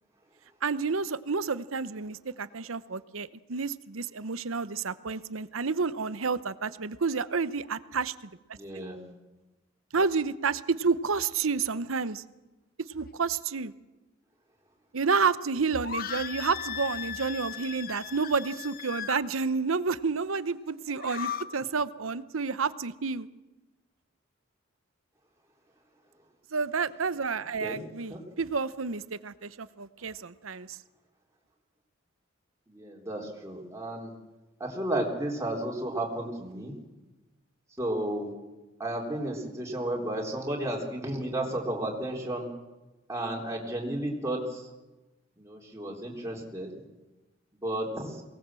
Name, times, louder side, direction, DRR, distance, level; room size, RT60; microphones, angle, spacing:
voice 1, 0.6-8.3 8.7-8.8 9.9-12.2 12.9-13.7 14.9-23.3 26.5-30.8, right 4 dB, 90° right, 15 dB, 0.9 m, -30 dB
voice 2, 8.5-9.0 27.6-27.8 28.1-28.2 32.7-34.1 34.6-36.8 37.8-38.3 38.8-42.5 43.1-44.7 45.4-46.7 47.6-48.2, right 1 dB, 15° right, -2 dB, 3.7 m, -33 dB
sound 1, 15.8-19.2 20.9-21.4, left 9 dB, 45° left, 0.9 m, -37 dB
23.5 x 19.0 x 7.6 m, 1.1 s
head